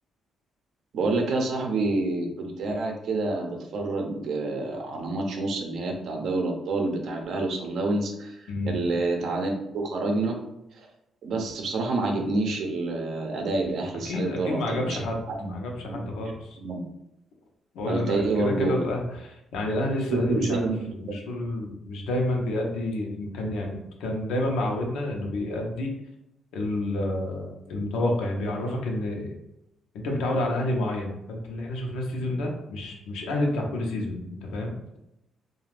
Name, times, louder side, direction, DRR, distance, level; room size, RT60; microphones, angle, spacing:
voice 1, 0.9-10.4 10.7-10.9 11.2-15.0 15.3-15.5 15.8-16.0 16.6-16.8 17.9-18.8 20.1-20.8 21.1-21.2, right 2 dB, 70° right, 2 dB, 0.6 m, -28 dB
voice 2, 8.5-8.8 14.0-16.6 17.7-25.9 26.5-29.3 29.9-34.8, left 1 dB, 90° left, 0 dB, 0.6 m, -29 dB
2.4 x 2.3 x 3.2 m, 0.86 s
cardioid pair, 90°, 0 cm